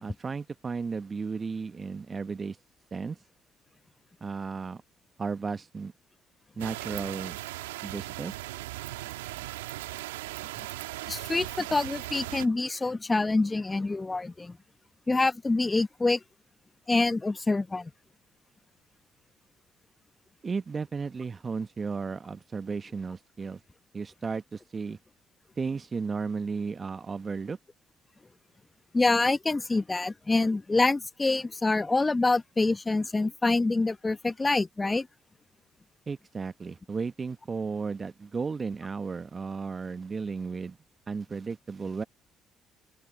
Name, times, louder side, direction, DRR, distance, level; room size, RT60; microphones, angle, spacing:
voice 1, 0.0-2.6 2.9-3.2 4.2-4.8 5.2-5.9 6.6-7.4 7.8-8.3 20.4-23.6 23.9-25.0 25.6-27.6 36.1-40.8 41.1-42.0, right 5 dB, 35° right, 1.0 m, -34 dB
sound 1, 6.6-12.5, right 17 dB, 85° right, 1.4 m, -38 dB
voice 2, 11.1-14.6 15.1-16.2 16.9-17.9 28.9-35.1, left 3 dB, 25° left, 1.1 m, -26 dB
hypercardioid pair, 50°, 0 cm